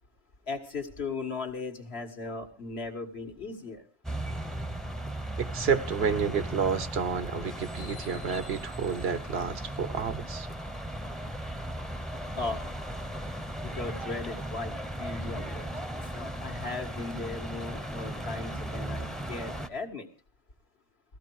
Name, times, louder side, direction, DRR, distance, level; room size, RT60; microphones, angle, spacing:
voice 1, 0.5-3.8 12.3-12.6 13.6-14.7 15.0-20.1, left 3 dB, 65° left, 2.1 m, -37 dB
sound 1, 4.0-19.7, right 1 dB, ahead, 0.9 m, -37 dB
voice 2, 5.4-10.5, right 6 dB, 65° right, 1.1 m, -30 dB
15.5 x 15.0 x 4.7 m
omnidirectional pair, 1.2 m